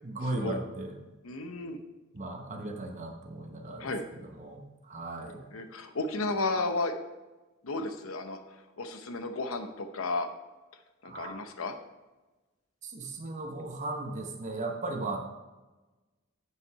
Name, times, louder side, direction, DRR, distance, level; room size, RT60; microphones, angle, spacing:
voice 1, 0.0-0.9 2.1-5.4 11.0-11.4 12.8-15.2, right 2 dB, 35° right, 1 dB, 1.0 m, -37 dB
voice 2, 1.2-1.8 3.8-4.0 5.5-7.0 7.6-8.4 8.8-10.3 11.0-11.8, left 2 dB, 75° left, 7 dB, 0.8 m, -33 dB
7.9 x 5.8 x 4.7 m, 1.1 s
head